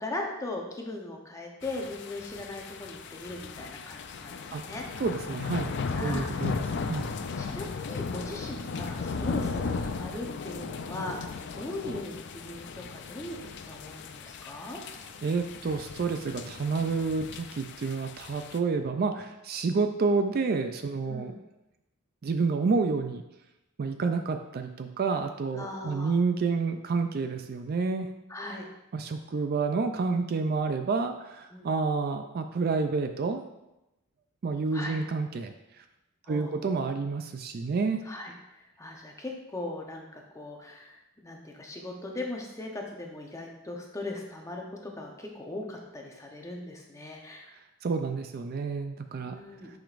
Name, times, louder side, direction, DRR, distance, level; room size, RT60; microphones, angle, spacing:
voice 1, 0.0-5.0 5.9-6.4 7.4-14.8 21.0-21.4 25.5-26.2 28.3-28.7 31.5-31.9 34.7-35.0 36.3-36.7 38.0-47.5 49.2-49.7, left 2 dB, 15° left, 0 dB, 0.8 m, -39 dB
sound 1, 1.6-18.6, left 4 dB, 55° left, 0.4 m, -36 dB
voice 2, 5.0-5.7 6.0-6.6 6.9-7.1 15.2-21.3 22.2-23.2 23.8-28.1 28.9-33.4 34.4-35.5 36.3-38.0 47.8-49.3, right 4 dB, 45° right, 7 dB, 0.4 m, -29 dB
9.0 x 5.0 x 2.5 m, 0.93 s
head